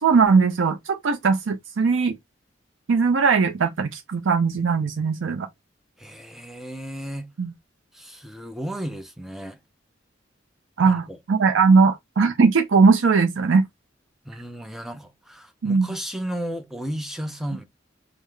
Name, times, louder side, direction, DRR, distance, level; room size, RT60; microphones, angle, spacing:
voice 1, 0.0-2.2 2.9-5.5 7.4-7.5 10.8-13.6 15.6-16.0, right 5 dB, 85° right, 0.5 m, -19 dB
voice 2, 6.0-7.3 7.9-9.6 10.8-11.2 14.2-17.7, right 1 dB, ahead, 0.5 m, -34 dB
5.4 x 2.0 x 3.2 m
head